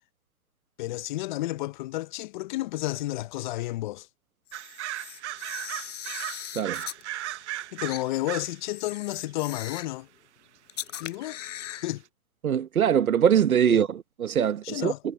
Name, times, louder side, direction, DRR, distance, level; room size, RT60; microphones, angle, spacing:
voice 1, 0.8-4.1 7.7-10.1 11.0-11.4 11.7-12.0 13.7-13.8 14.6-15.0, left 17 dB, 35° left, 0.8 m, -31 dB
Camera, 4.5-7.0 7.9-8.0 8.7-10.0 10.7-11.9, left 11 dB, 60° left, 4.6 m, -39 dB
sound 1, 4.5-8.6 8.9-9.3 10.9-11.0 11.2-11.3 11.6-11.7, right 13 dB, 50° right, 1.1 m, -36 dB
voice 2, 12.4-14.9, right 8 dB, 75° right, 1.4 m, -22 dB
hypercardioid pair, 135°, 43 cm